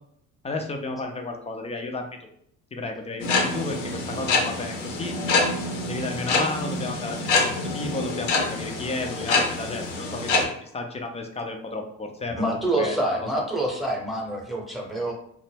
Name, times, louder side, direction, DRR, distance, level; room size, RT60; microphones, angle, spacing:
voice 1, 0.4-2.1 2.7-5.2 5.8-13.4, left 2 dB, 15° left, 4 dB, 0.4 m, -33 dB
sound 1, 3.2-10.4, left 3 dB, 75° left, 0.7 m, -26 dB
voice 2, 12.3-15.1, right 1 dB, ahead, -1 dB, 0.8 m, -27 dB
2.1 x 2.1 x 3.2 m, 0.71 s
hypercardioid pair, 60°, 39 cm